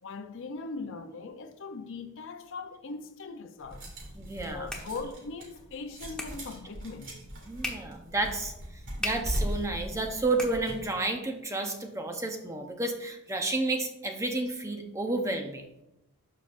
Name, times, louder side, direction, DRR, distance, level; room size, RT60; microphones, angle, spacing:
voice 1, 0.0-3.8 4.3-7.2, left 4 dB, 60° left, 0.6 m, -40 dB
sound 1, 3.6-10.8, equal, 55° right, 2.3 m, -39 dB
voice 2, 4.1-4.7 7.5-15.8, right 2 dB, 15° right, 0.7 m, -31 dB
sound 2, 4.2-11.2, left 2 dB, 5° left, 1.0 m, -43 dB
12.5 x 5.1 x 2.5 m
head